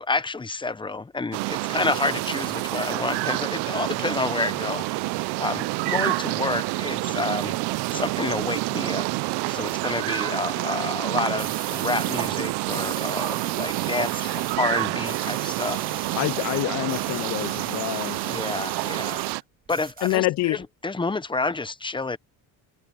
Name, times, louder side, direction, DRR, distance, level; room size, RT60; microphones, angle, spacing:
voice 1, 0.0-4.9 5.4-7.6 7.9-9.1 9.5-15.8 18.3-19.2 19.7-22.2, left 3 dB, 15° left, 0.8 m, -29 dB
sound 1, 1.3-19.4, right 23 dB, 85° right, 0.5 m, -28 dB
sound 2, 1.8-19.2, left 18 dB, 85° left, 7.0 m, -51 dB
sound 3, 11.4-12.3 12.7-14.6 14.8-19.4 19.7-20.7, right 6 dB, 25° right, 0.7 m, -39 dB
voice 2, 16.1-18.2 20.0-20.6, left 17 dB, 50° left, 0.4 m, -26 dB
cardioid pair, 115°, 39 cm